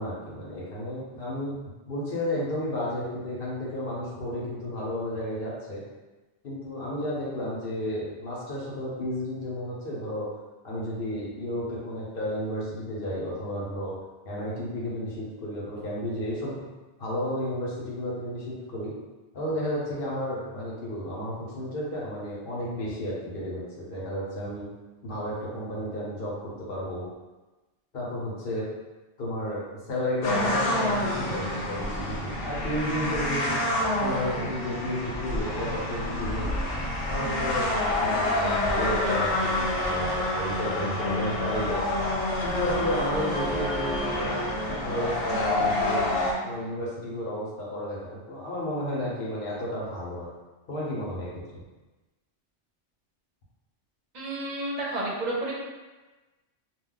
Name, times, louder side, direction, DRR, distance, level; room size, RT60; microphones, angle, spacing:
voice 1, 0.0-1.5 1.9-5.8 6.4-10.3 10.6-14.0 14.3-16.6 17.0-18.9 19.3-24.7 25.0-27.0 27.9-28.6 29.2-33.5 34.0-36.5 37.1-41.8 42.4-46.0 46.4-50.3 50.7-51.6, left 1 dB, 55° left, -6 dB, 0.9 m, -32 dB
sound 1, 30.2-46.3, left 1 dB, 85° left, 1.0 m, -28 dB
voice 2, 54.1-55.5, right 1 dB, 45° right, -5 dB, 0.7 m, -30 dB
2.2 x 2.2 x 3.8 m, 1.2 s
omnidirectional pair, 1.2 m